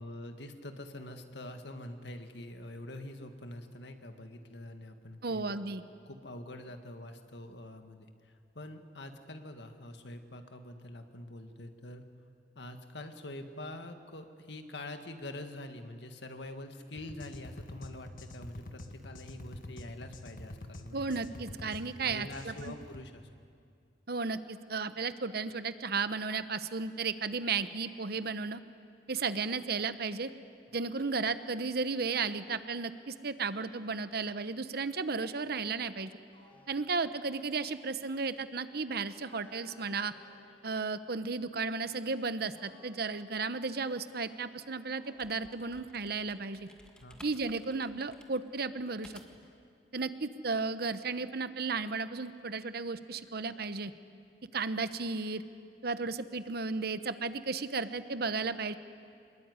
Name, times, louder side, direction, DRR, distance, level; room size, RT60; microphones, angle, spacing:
voice 1, 0.0-5.6 6.1-12.1 12.6-21.2 22.0-23.3 47.0-47.2, left 1 dB, 70° left, 7 dB, 1.9 m, -45 dB
voice 2, 5.2-5.8 20.9-22.7 24.1-28.6 29.1-30.3 30.7-36.2 36.7-40.1 40.6-46.7 47.2-49.1 49.9-53.9 54.5-55.4 55.8-58.8, right 4 dB, 60° right, 12 dB, 1.0 m, -34 dB
sound 1, 17.0-23.1, left 1 dB, 50° left, 1.5 m, -47 dB
sound 2, 36.3-37.7 39.1-41.5 42.6-44.0 44.9-45.7, left 2 dB, 30° left, 5.6 m, -61 dB
sound 3, 45.1-49.6, equal, 5° left, 1.9 m, -57 dB
25.0 x 21.0 x 9.6 m, 2.4 s
head